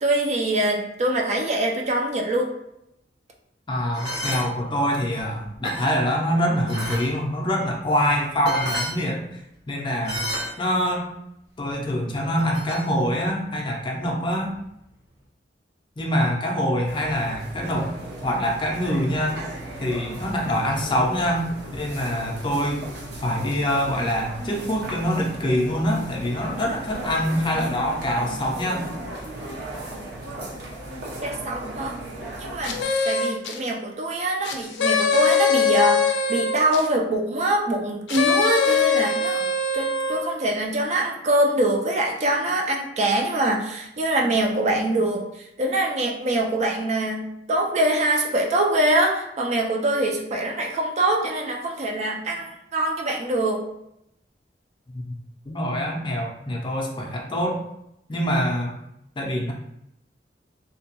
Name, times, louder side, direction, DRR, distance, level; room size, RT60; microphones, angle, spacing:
voice 1, 0.0-2.5 31.2-32.0 32.4-32.8 33.1-39.5 39.7-53.7, right 1 dB, 40° right, 1 dB, 0.4 m, -24 dB
voice 2, 3.7-9.3 9.7-10.3 10.6-11.1 11.6-14.5 16.0-17.9 18.2-19.4 19.8-21.5 21.7-22.8 23.2-28.9 54.9-55.1 55.5-57.6 58.1-58.7 59.2-59.5, equal, 30° left, 0 dB, 0.5 m, -25 dB
sound 1, 3.9-4.4 5.2-6.0 6.7-7.1 8.1-8.2 8.4-9.0 10.0-10.5 12.4-12.9, equal, 85° right, 1.3 m, -30 dB
sound 2, 16.9-32.8, right 1 dB, 65° right, 0.7 m, -36 dB
sound 3, 32.6-33.6 34.4-36.9 38.1-40.3, left 5 dB, 85° left, 0.4 m, -22 dB
2.7 x 2.2 x 2.8 m, 0.81 s
head